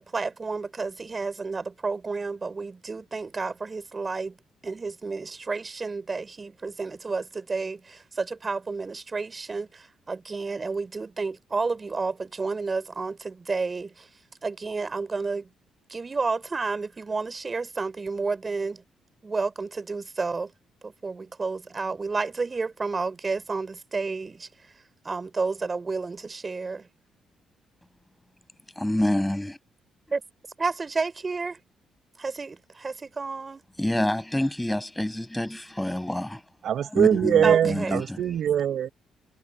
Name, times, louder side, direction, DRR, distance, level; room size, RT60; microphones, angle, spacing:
voice 1, 0.0-4.3 4.6-14.0 14.4-15.5 15.9-18.8 19.2-20.5 20.8-24.5 25.0-26.9 30.1-30.2 30.6-31.6 32.2-33.6 37.4-37.9, right 4 dB, 30° right, 5.5 m, -31 dB
voice 2, 28.8-29.6 33.8-36.4 36.9-38.2, left 1 dB, 5° left, 5.9 m, -27 dB
voice 3, 36.6-38.9, right 9 dB, 65° right, 4.9 m, -22 dB
cardioid pair, 90°, 0 cm